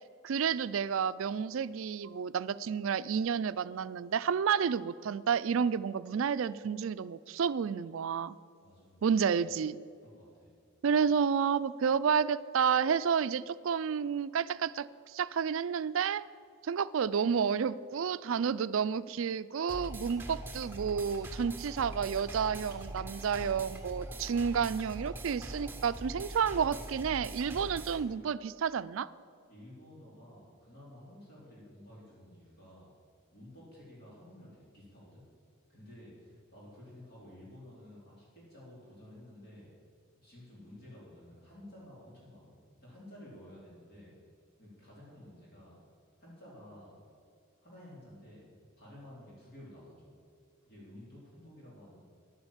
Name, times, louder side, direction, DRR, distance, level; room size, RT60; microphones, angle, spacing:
voice 1, 0.2-8.4 9.0-9.8 10.8-16.2 16.6-29.1, right 7 dB, 65° right, 16 dB, 0.4 m, -30 dB
voice 2, 8.6-9.3 10.0-10.5 29.5-32.9 33.3-35.2 35.7-39.7 40.2-44.1 44.6-45.8 46.2-47.0 47.6-48.5 48.8-50.1 50.7-52.0, left 1 dB, 50° left, -6 dB, 3.9 m, -53 dB
sound 1, 19.7-28.0, right 1 dB, 10° right, 1.1 m, -43 dB
10.5 x 9.5 x 7.3 m, 2.3 s
head